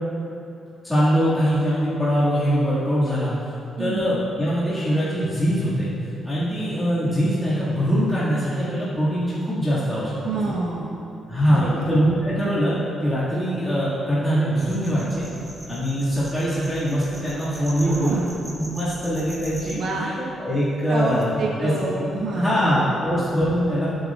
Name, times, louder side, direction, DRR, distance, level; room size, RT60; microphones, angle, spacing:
voice 1, 0.8-3.3 3.8-5.9 6.2-10.4 11.3-12.8 13.0-15.3 15.7-18.2 18.6-21.7 22.3-23.9, equal, 5° left, -12 dB, 2.1 m, -22 dB
voice 2, 10.2-11.0 11.5-11.8 17.8-18.3 19.7-20.1 20.9-22.8, right 2 dB, 60° right, -4 dB, 1.3 m, -27 dB
sound 1, 14.6-19.7, right 1 dB, 10° right, 1.8 m, -41 dB
17.0 x 7.9 x 2.5 m, 2.8 s
cardioid pair, 170°, 0 cm